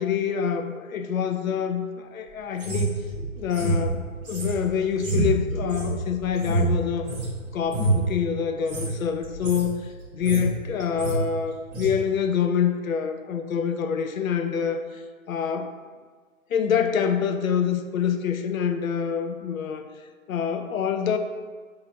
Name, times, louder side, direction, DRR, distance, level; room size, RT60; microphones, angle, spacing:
voice 1, 0.0-2.9 3.4-7.1 7.5-9.8 10.2-15.0 15.3-15.7 16.5-19.9 20.3-21.2, left 7 dB, 75° left, 7 dB, 0.5 m, -26 dB
sound 1, 2.6-7.3 7.6-8.1 8.6-8.9 9.2-9.7 10.0-10.5 10.8-11.2 11.7-11.9, right 2 dB, 15° right, 0.7 m, -27 dB
4.0 x 2.7 x 4.0 m, 1.5 s
figure-of-eight pair, 135°, 42 cm